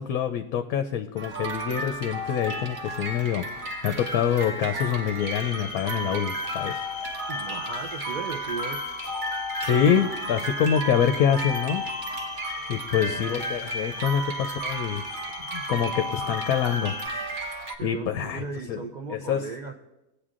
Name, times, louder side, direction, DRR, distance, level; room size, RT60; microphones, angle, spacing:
voice 1, 0.0-6.8 9.6-11.8 12.7-15.0 15.5-16.9 17.8-18.8 19.1-19.5, left 8 dB, 70° left, 6 dB, 1.0 m, -26 dB
sound 1, 1.2-17.7, right 1 dB, 40° right, 0.8 m, -33 dB
sound 2, 5.2-17.1, left 7 dB, 50° left, 0.7 m, -40 dB
voice 2, 7.3-8.8 13.5-13.7 17.8-19.8, right 4 dB, 70° right, 2 dB, 0.4 m, -36 dB
20.0 x 8.4 x 2.5 m, 0.96 s
omnidirectional pair, 1.6 m